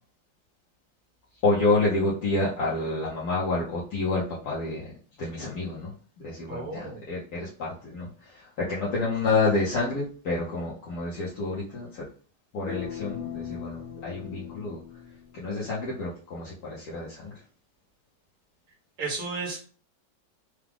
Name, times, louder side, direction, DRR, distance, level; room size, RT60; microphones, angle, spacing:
voice 1, 1.4-4.9 5.2-5.9 6.2-12.0 12.5-14.8 15.3-17.4, left 3 dB, 60° left, -7 dB, 1.4 m, -28 dB
voice 2, 6.5-7.0 19.0-19.6, right 3 dB, 60° right, -2 dB, 2.0 m, -33 dB
sound 1, 12.7-15.7, left 9 dB, 80° left, 0.5 m, -39 dB
4.8 x 2.3 x 3.5 m, 0.41 s
omnidirectional pair, 2.0 m